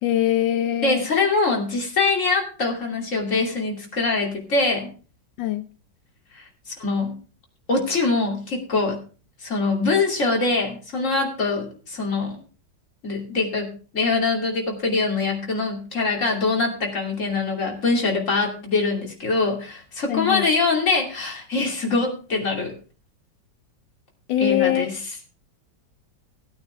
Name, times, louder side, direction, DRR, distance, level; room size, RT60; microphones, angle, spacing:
voice 1, 0.0-1.1 5.4-5.6 20.1-20.5 24.3-24.9, left 12 dB, 85° left, 9 dB, 1.5 m, -22 dB
voice 2, 0.8-4.9 6.3-6.4 6.8-7.1 7.7-9.0 9.4-12.4 13.0-22.7 24.4-25.0, left 3 dB, 40° left, 1 dB, 3.1 m, -23 dB
17.0 x 9.1 x 3.3 m, 0.37 s
omnidirectional pair, 2.0 m